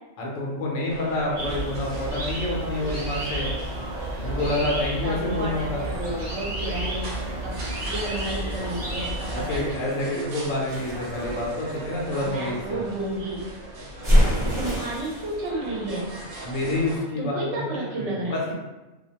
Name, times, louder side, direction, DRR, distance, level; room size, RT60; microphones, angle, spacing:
voice 1, 0.2-3.5 4.2-5.8 9.3-12.8 16.4-18.5, left 2 dB, 75° left, -3 dB, 1.1 m, -28 dB
sound 1, 0.9-17.0, right 2 dB, 90° right, 1.1 m, -38 dB
sound 2, 1.3-9.7, right 1 dB, 45° right, 0.4 m, -32 dB
voice 2, 5.0-7.6 7.8-9.7 12.2-13.4 14.5-16.1 17.2-18.4, right 1 dB, 65° right, -4 dB, 1.0 m, -32 dB
sound 3, 10.7-12.6 14.0-15.3, equal, 25° right, 0.9 m, -24 dB
2.7 x 2.1 x 2.8 m, 1.1 s
omnidirectional pair, 1.3 m